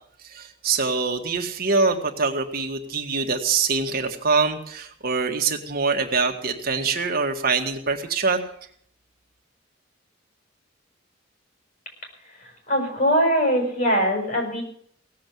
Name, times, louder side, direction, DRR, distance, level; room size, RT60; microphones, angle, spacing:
voice 1, 0.2-8.4, right 4 dB, 50° right, 3 dB, 1.7 m, -24 dB
voice 2, 12.4-14.6, equal, 45° left, 2 dB, 6.3 m, -22 dB
17.5 x 7.6 x 9.3 m, 0.62 s
head